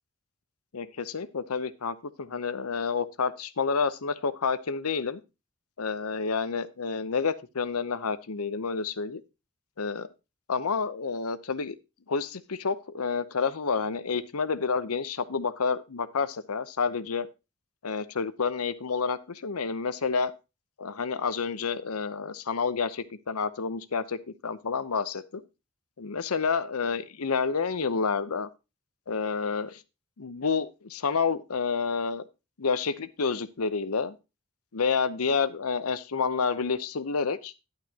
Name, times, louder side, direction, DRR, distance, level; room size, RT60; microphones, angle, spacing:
voice 1, 0.7-5.2 5.8-9.2 9.8-10.1 10.5-11.7 12.1-17.3 17.8-20.3 20.8-25.4 26.0-28.5 29.1-29.8 30.2-32.2 32.6-34.2 34.7-37.5, left 5 dB, 90° left, 15 dB, 0.8 m, -29 dB
11.0 x 9.0 x 2.9 m, 0.27 s
head